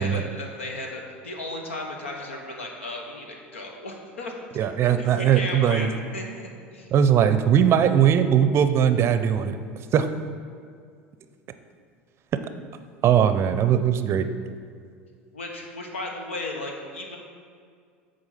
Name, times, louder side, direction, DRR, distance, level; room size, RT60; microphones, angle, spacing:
voice 1, 0.0-4.3 5.0-6.9 15.3-17.2, left 2 dB, 90° left, 2 dB, 1.0 m, -35 dB
voice 2, 4.6-5.9 6.9-9.6 9.9-10.1 13.0-14.3, right 9 dB, 40° right, 10 dB, 0.5 m, -20 dB
8.0 x 4.0 x 5.7 m, 2.2 s
hypercardioid pair, 80°, 6 cm